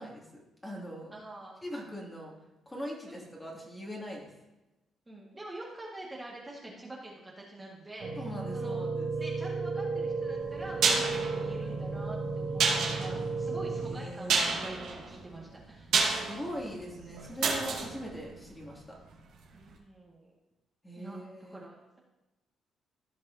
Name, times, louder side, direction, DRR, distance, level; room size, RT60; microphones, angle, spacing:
voice 1, 0.0-1.1 1.6-2.3 2.7-4.3 8.2-9.1 13.7-14.5 16.1-18.8 20.8-21.7, equal, 15° left, -2 dB, 2.4 m, -41 dB
voice 2, 1.1-1.6 3.1-3.3 5.1-8.2 8.5-16.2 19.5-20.3 21.0-21.2 21.5-22.0, right 1 dB, 20° right, -3 dB, 1.8 m, -45 dB
sound 1, 8.0-13.9, right 4 dB, 45° right, 2.2 m, -34 dB
sound 2, 10.4-19.3 19.6-19.7, right 4 dB, 80° right, 2.2 m, -31 dB
15.5 x 5.4 x 2.8 m, 1.0 s
cardioid pair, 90°, 0 cm